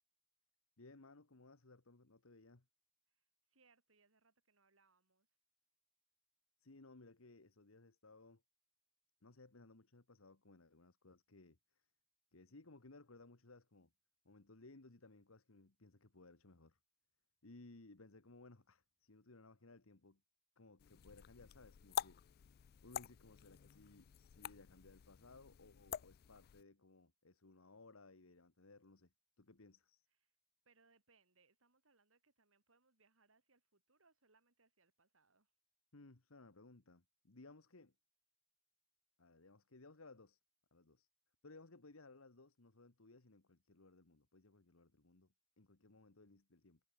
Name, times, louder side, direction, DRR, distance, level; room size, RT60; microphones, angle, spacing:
voice 1, 0.8-2.7 6.6-8.4 9.2-11.9 12.3-13.9 14.2-16.8 17.4-20.2 20.6-22.4 22.8-30.1 35.9-37.9 39.2-40.4 40.7-41.1 41.4-46.8, left 2 dB, 80° left, 1.6 m, -61 dB
voice 2, 3.1-5.3 30.7-35.5, right 4 dB, 70° right, 3.4 m, -75 dB
sound 1, 20.8-26.6, left 9 dB, 45° left, 0.3 m, -48 dB
head